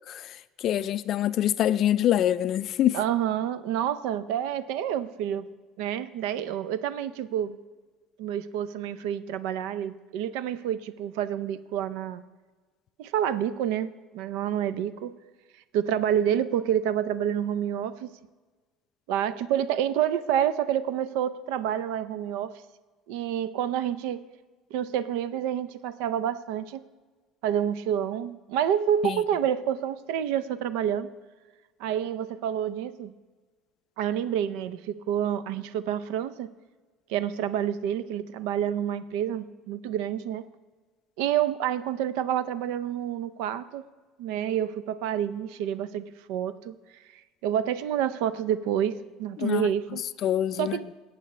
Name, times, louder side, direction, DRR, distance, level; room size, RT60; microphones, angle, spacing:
voice 1, 0.1-3.0 29.0-29.2 49.4-49.7 50.2-50.8, left 11 dB, 40° left, 0.3 m, -25 dB
voice 2, 2.9-5.5 5.8-7.6 8.2-12.2 13.0-15.1 15.7-18.1 19.1-22.6 23.1-24.2 24.7-26.9 27.4-31.1 31.8-33.1 34.0-36.5 37.1-40.5 41.2-43.8 44.2-46.8 47.4-50.0 50.6-50.9, right 10 dB, 85° right, 0.5 m, -28 dB
18.5 x 8.2 x 3.2 m
cardioid pair, 170°, 0 cm